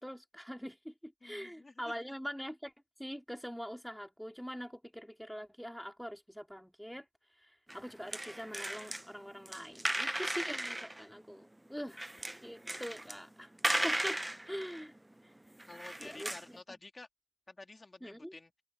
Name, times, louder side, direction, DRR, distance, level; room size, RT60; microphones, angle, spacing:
voice 1, 0.0-2.7 3.0-7.1 7.4-12.1 12.4-13.5 13.8-14.2 14.5-14.9 16.0-16.3 18.0-18.3, equal, ahead, 2.3 m, -43 dB
voice 2, 1.2-1.9 6.9-7.0 15.7-17.1 17.5-18.5, left 2 dB, 60° left, 2.6 m, -51 dB
sound 1, 7.7-9.0 9.5-11.0 11.9-13.2 13.6-15.1 15.5-16.6, right 1 dB, 20° right, 0.6 m, -36 dB
open air
wide cardioid pair, 55°, 0 cm